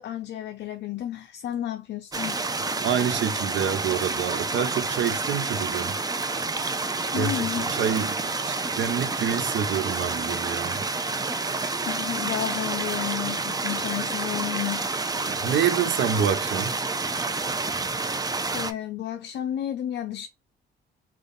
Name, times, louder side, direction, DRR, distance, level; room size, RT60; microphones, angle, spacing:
voice 1, 0.0-2.4 7.1-7.7 11.9-14.8 18.5-20.3, left 11 dB, 60° left, 0.4 m, -32 dB
sound 1, 2.1-18.7, right 3 dB, 20° right, 0.5 m, -29 dB
voice 2, 2.8-6.0 7.2-10.8 15.2-16.8, right 8 dB, 70° right, 0.7 m, -27 dB
3.4 x 2.4 x 3.8 m
cardioid pair, 90°, 20 cm